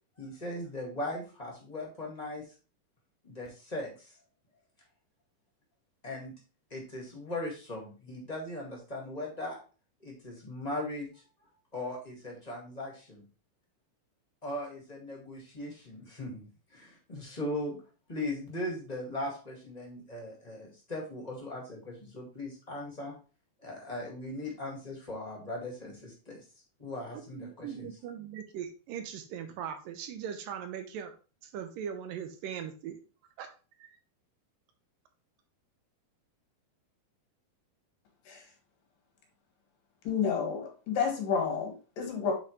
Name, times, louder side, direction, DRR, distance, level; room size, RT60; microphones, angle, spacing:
voice 1, 0.2-2.4 3.2-4.1 6.0-6.3 6.7-9.6 10.0-11.1 11.7-13.2 14.4-16.5 16.7-17.8 18.1-23.1 23.6-26.4 26.8-27.9, left 1 dB, 20° left, -2 dB, 1.1 m, -39 dB
voice 2, 27.1-31.1 31.4-33.0 33.4-33.5 33.8-34.0, right 8 dB, 85° right, 7 dB, 2.6 m, -40 dB
voice 3, 40.0-42.3, left 6 dB, 80° left, 4 dB, 3.2 m, -30 dB
8.0 x 4.3 x 3.2 m, 0.35 s
omnidirectional pair, 3.9 m